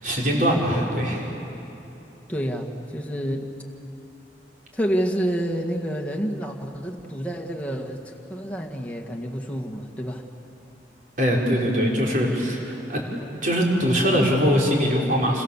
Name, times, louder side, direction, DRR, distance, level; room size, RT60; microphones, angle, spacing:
voice 1, 0.0-1.3 11.2-13.0 13.4-15.4, equal, 50° right, -2 dB, 4.9 m, -22 dB
voice 2, 2.3-3.5 4.7-10.2, equal, 10° left, 0 dB, 1.9 m, -28 dB
29.0 x 25.5 x 7.4 m, 2.9 s
head